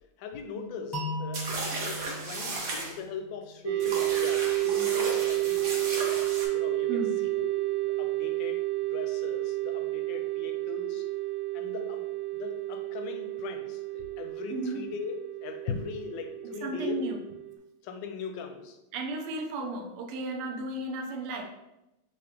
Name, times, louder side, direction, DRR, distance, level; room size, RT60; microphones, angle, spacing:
voice 1, 0.2-5.9 6.5-8.6 8.9-11.1 11.5-12.1 12.3-17.0 17.8-18.8 19.6-19.9, left 6 dB, 75° left, 6 dB, 1.1 m, -40 dB
sound 1, 0.9-3.8, equal, 25° left, 0.4 m, -38 dB
sound 2, 1.3-2.9 3.8-6.5, right 2 dB, 50° right, 1.1 m, -35 dB
sound 3, 3.6-17.5, right 18 dB, 70° right, 1.4 m, -31 dB
voice 2, 14.5-14.8 16.6-17.2 18.9-21.4, right 2 dB, 85° right, 2 dB, 1.6 m, -34 dB
5.9 x 2.7 x 3.3 m, 0.91 s
omnidirectional pair, 2.4 m